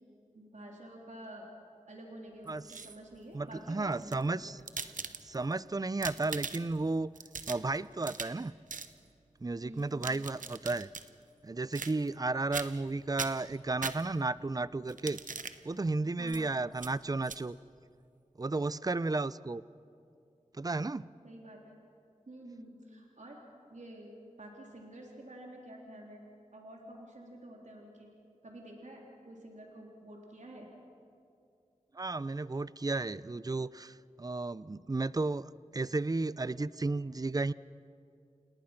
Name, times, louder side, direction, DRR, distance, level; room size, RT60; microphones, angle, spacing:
voice 1, 0.3-1.5 1.9-4.6 9.6-10.0 16.2-16.5 21.2-21.8 22.3-23.4 23.7-24.1 24.4-26.2 26.5-28.1 28.4-30.7, right 1 dB, 65° right, -1 dB, 3.6 m, -49 dB
voice 2, 2.5-2.8 3.3-4.6 5.2-7.1 7.5-8.5 9.4-10.9 11.4-15.2 15.6-17.6 18.4-19.6 20.5-21.1 31.9-37.5, right 3 dB, 30° right, 18 dB, 0.5 m, -33 dB
sound 1, 2.5-3.2 3.9-5.5 5.9-6.8 7.2-8.4 8.7-8.9 9.8-11.1 11.7-12.2 12.5-12.9 13.2-14.4 14.9-15.6 16.3-16.4 16.8-16.9 17.2-17.4, right 5 dB, 85° right, 0.9 m, -41 dB
29.5 x 18.5 x 5.9 m, 2.4 s
cardioid pair, 45°, 13 cm